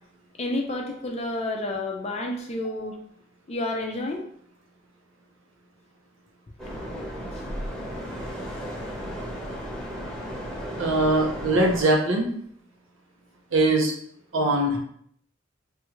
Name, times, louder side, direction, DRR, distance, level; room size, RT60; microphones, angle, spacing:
voice 1, 0.4-3.0 3.5-4.2, left 2 dB, 35° left, 2 dB, 0.5 m, -30 dB
sound 1, 6.6-11.8, equal, 5° left, 1.0 m, -34 dB
voice 2, 10.8-12.3 13.5-13.9 14.3-14.8, right 2 dB, 85° right, 0 dB, 0.7 m, -21 dB
3.1 x 2.3 x 3.1 m, 0.65 s
head